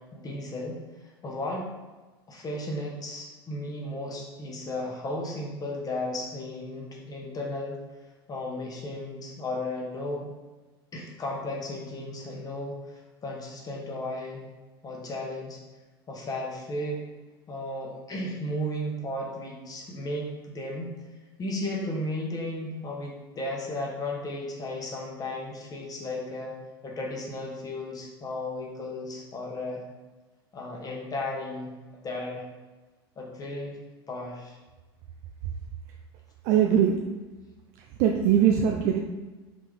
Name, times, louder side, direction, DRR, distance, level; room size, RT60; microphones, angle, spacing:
voice 1, 0.1-0.8 1.2-1.7 2.3-7.8 8.3-10.3 10.9-14.4 14.8-15.6 16.1-17.0 17.5-20.9 21.4-26.6 26.8-29.8 30.5-31.7 32.0-32.4 33.2-33.8 34.1-34.6, left 1 dB, 30° left, -1 dB, 1.1 m, -34 dB
voice 2, 36.4-37.0 38.0-39.0, right 9 dB, 55° right, 3 dB, 0.4 m, -21 dB
3.8 x 3.4 x 3.3 m, 1.2 s
hypercardioid pair, 80°, 13 cm